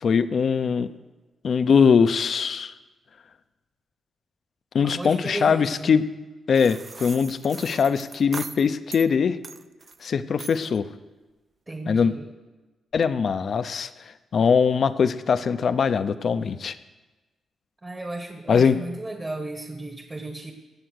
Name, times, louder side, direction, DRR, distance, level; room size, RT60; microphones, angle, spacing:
voice 1, 0.0-0.9 1.4-2.7 4.7-6.0 6.5-9.4 10.0-10.9 11.9-12.1 12.9-13.9 14.3-16.7 18.5-18.8, left 6 dB, 55° left, 12 dB, 0.6 m, -21 dB
voice 2, 4.8-6.0 11.7-12.3 17.8-20.5, right 2 dB, 25° right, 4 dB, 1.4 m, -35 dB
sound 1, 6.5-9.1 9.4-10.0 10.4-10.8, right 4 dB, 40° right, 0.5 m, -40 dB
17.0 x 7.1 x 6.5 m, 1.2 s
cardioid pair, 85°, 0 cm